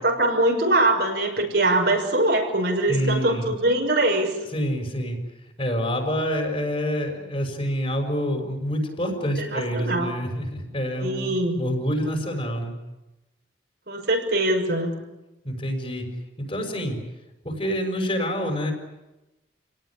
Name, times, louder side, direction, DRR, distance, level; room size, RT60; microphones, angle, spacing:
voice 1, 0.0-4.4 9.4-10.1 11.0-11.6 13.9-14.9, right 2 dB, 60° right, 2 dB, 6.2 m, -22 dB
voice 2, 2.9-3.5 4.5-5.2 5.6-12.7 15.4-16.1 16.4-17.0 17.4-18.7, equal, 30° left, 3 dB, 6.1 m, -27 dB
29.5 x 18.5 x 10.0 m, 1.0 s
head